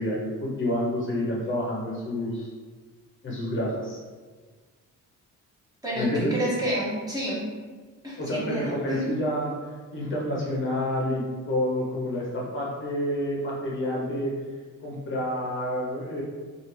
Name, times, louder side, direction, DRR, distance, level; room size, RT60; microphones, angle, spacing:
voice 1, 0.0-2.5 3.2-4.0 5.9-6.3 8.2-12.3 12.5-14.3 14.8-16.2, left 1 dB, 40° left, -4 dB, 0.7 m, -28 dB
voice 2, 5.8-7.5 8.0-9.0, right 1 dB, 10° right, -7 dB, 0.9 m, -29 dB
3.2 x 2.4 x 3.1 m, 1.5 s
cardioid pair, 140°, 31 cm